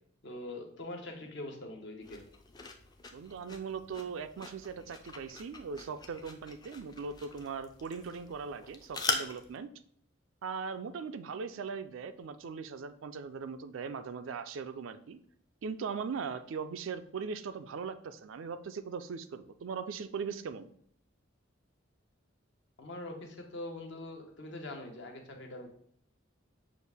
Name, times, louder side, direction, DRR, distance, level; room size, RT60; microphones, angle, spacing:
voice 1, 0.2-2.2 22.8-25.7, left 2 dB, 60° left, 2 dB, 0.9 m, -43 dB
sound 1, 2.0-9.6, left 4 dB, 20° left, 0.4 m, -41 dB
voice 2, 3.1-9.7 10.4-15.2 15.6-20.7, right 5 dB, 75° right, 11 dB, 0.4 m, -39 dB
6.2 x 2.4 x 3.4 m, 0.64 s
head